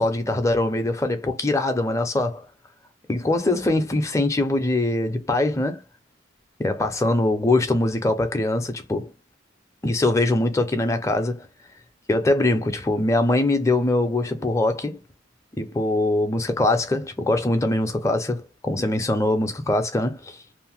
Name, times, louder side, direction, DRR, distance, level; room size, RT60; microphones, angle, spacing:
voice 1, 0.0-2.5 3.1-5.8 6.6-9.1 9.8-11.5 12.1-15.0 15.5-20.5, left 2 dB, 15° left, 0.5 m, -22 dB
2.6 x 2.0 x 3.4 m
head